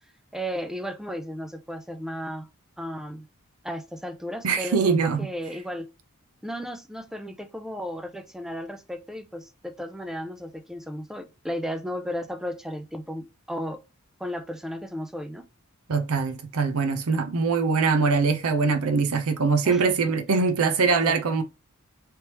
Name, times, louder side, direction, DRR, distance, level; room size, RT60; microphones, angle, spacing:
voice 1, 0.3-2.5 2.8-3.3 3.6-5.9 6.4-13.8 14.2-15.4 19.6-20.0 21.0-21.2, equal, ahead, 0.3 m, -34 dB
voice 2, 4.4-5.3 15.9-21.4, right 4 dB, 75° right, 0.6 m, -23 dB
3.4 x 3.0 x 2.9 m
head